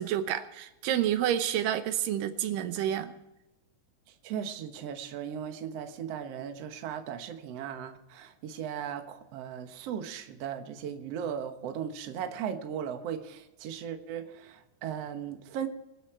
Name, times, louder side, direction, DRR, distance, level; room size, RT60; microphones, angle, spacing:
voice 1, 0.0-3.1, right 11 dB, 85° right, 10 dB, 2.5 m, -29 dB
voice 2, 4.2-15.7, right 8 dB, 60° right, 6 dB, 2.0 m, -37 dB
24.5 x 8.4 x 4.4 m, 0.98 s
omnidirectional pair, 3.9 m